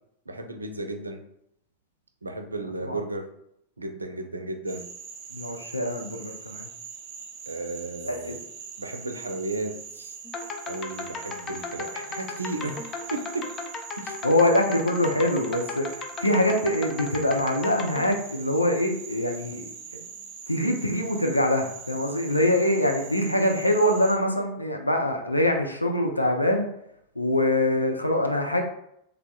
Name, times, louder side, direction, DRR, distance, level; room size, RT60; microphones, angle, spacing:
voice 1, 0.3-1.2 2.2-3.3 3.8-4.8 7.5-8.4 8.8-10.2 10.6-12.8 13.1-13.5 14.0-14.2, right 2 dB, 80° right, 6 dB, 0.4 m, -34 dB
Frog, 4.7-24.1, right 6 dB, 35° right, 0.8 m, -42 dB
voice 2, 5.3-6.7 8.0-8.4 14.2-20.0 20.5-26.7 27.2-28.6, left 1 dB, 85° left, 3 dB, 0.5 m, -24 dB
sound 1, 10.2-18.1, left 4 dB, 25° left, 0.5 m, -36 dB
3.5 x 3.4 x 2.2 m, 0.74 s
figure-of-eight pair, 90°, 0 cm